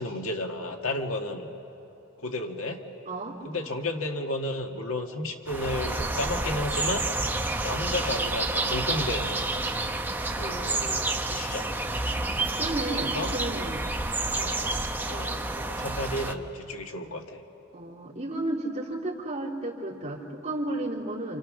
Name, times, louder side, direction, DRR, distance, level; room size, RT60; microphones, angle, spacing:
voice 1, 0.0-1.5 2.2-2.8 3.4-7.1 7.6-9.4 10.3-11.8 12.9-13.3 14.3-17.4, left 2 dB, 90° left, 3 dB, 1.8 m, -33 dB
voice 2, 3.1-3.4 12.5-13.8 17.7-21.4, right 1 dB, 30° right, -5 dB, 3.5 m, -32 dB
sound 1, 5.5-16.3, right 2 dB, 10° right, 0.8 m, -29 dB
28.5 x 28.0 x 6.4 m, 3.0 s
head